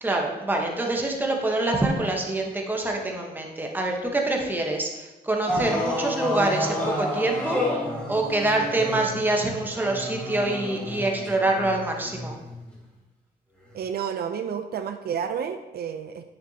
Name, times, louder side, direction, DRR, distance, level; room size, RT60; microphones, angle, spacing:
voice 1, 0.0-12.4, right 2 dB, 10° right, 0 dB, 1.0 m, -26 dB
sound 1, 5.5-12.6 13.7-13.8, left 1 dB, 5° left, 1.8 m, -30 dB
voice 2, 13.7-16.2, right 7 dB, 70° right, 8 dB, 0.5 m, -30 dB
9.5 x 6.6 x 2.8 m, 1.1 s
wide cardioid pair, 150°, 17 cm